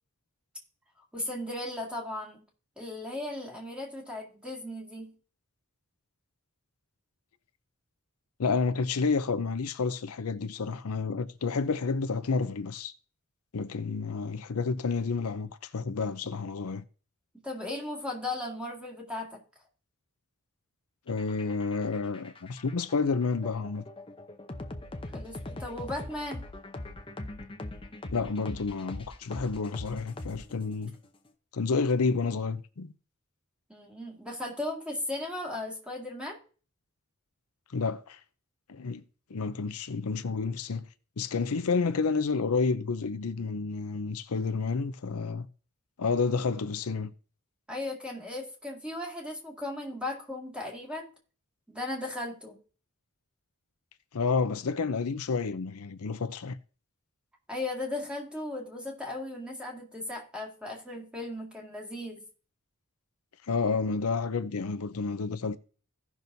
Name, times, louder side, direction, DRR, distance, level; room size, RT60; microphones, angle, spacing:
voice 1, 1.1-2.4 2.8-5.1 17.4-19.4 25.1-26.5 33.7-36.4 47.7-51.1 51.7-52.6 57.5-62.3, left 2 dB, 5° right, 2.0 m, -36 dB
voice 2, 8.4-12.9 13.5-16.8 21.1-23.8 28.0-30.9 31.5-32.9 37.7-38.2 38.7-39.0 39.3-40.9 41.2-45.5 46.0-47.1 54.1-56.6 63.5-65.6, left 4 dB, 85° left, 0.6 m, -30 dB
sound 1, 21.1-30.8, left 2 dB, 25° left, 0.7 m, -41 dB
16.5 x 6.0 x 2.7 m
head